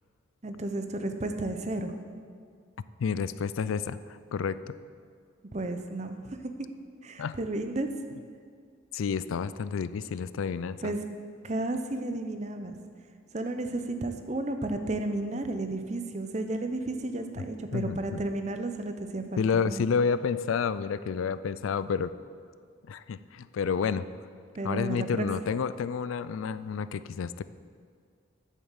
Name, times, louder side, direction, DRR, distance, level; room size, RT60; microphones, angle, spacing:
voice 1, 0.4-1.9 5.5-6.4 7.0-7.9 10.8-11.0 11.4-12.7 13.3-19.8 24.6-25.3, right 2 dB, 35° right, 7 dB, 0.7 m, -32 dB
voice 2, 3.0-4.7 7.2-7.4 8.9-10.9 17.4-17.5 17.7-18.2 19.4-22.1 22.9-24.1 24.6-27.4, left 6 dB, 85° left, 15 dB, 0.4 m, -30 dB
8.5 x 7.3 x 7.2 m, 2.1 s
head